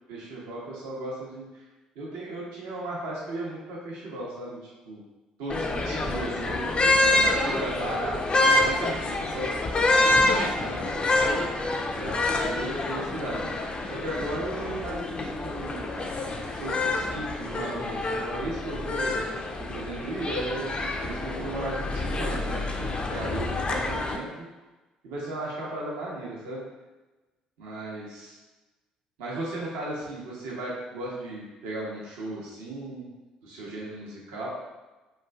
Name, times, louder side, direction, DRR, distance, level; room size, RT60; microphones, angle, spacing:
voice 1, 0.1-1.6 2.0-5.0 5.4-9.5 9.9-11.5 11.9-13.5 13.9-15.8 16.5-19.2 19.7-24.5 25.0-26.6 27.6-28.4 29.2-33.0 33.4-34.5, right 2 dB, 75° right, -5 dB, 0.6 m, -36 dB
sound 1, 5.5-24.2, left 2 dB, 35° left, 0.4 m, -27 dB
3.1 x 2.4 x 2.2 m, 1.1 s
hypercardioid pair, 55°, 3 cm